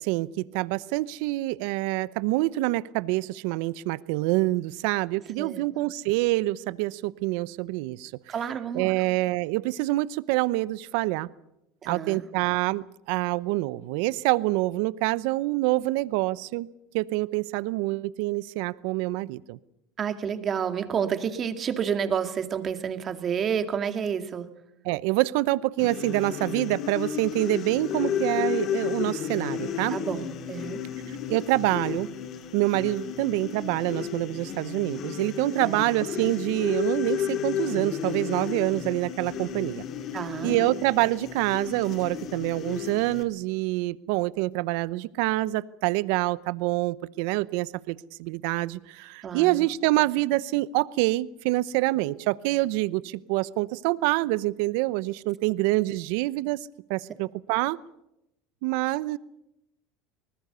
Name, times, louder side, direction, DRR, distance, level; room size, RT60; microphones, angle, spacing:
voice 1, 0.5-8.1 8.7-11.3 11.9-12.8 13.1-16.7 16.9-19.6 24.9-30.0 31.3-32.1 32.5-39.8 40.4-47.9 48.2-48.8 49.3-53.0 53.3-56.6 56.9-57.8 58.6-59.2, right 19 dB, 70° right, 19 dB, 0.8 m, -26 dB
voice 2, 8.3-8.9 11.8-12.2 20.0-24.5 29.9-30.8 35.6-35.8 40.1-40.5 49.2-49.6, right 7 dB, 35° right, 8 dB, 2.3 m, -29 dB
sound 1, 25.8-43.2, left 8 dB, 50° left, 2.2 m, -33 dB
25.0 x 19.5 x 6.9 m, 0.86 s
supercardioid pair, 105°, 0 cm